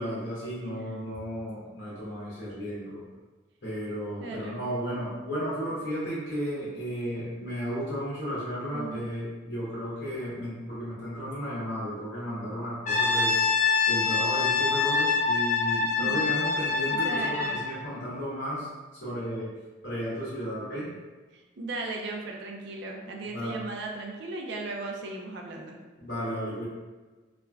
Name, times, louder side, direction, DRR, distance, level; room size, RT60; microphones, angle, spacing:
voice 1, 0.0-3.0 3.6-13.4 13.9-18.7 19.0-19.5 19.8-20.9 23.2-23.5 26.0-26.6, equal, 60° left, -10 dB, 1.1 m, -34 dB
voice 2, 4.2-4.6 8.7-9.1 16.0-16.3 16.9-17.6 21.3-25.8, right 2 dB, 65° right, 0 dB, 0.4 m, -37 dB
Brass instrument, 12.9-17.7, left 4 dB, 40° left, 0.5 m, -25 dB
3.1 x 2.4 x 2.3 m, 1.3 s
head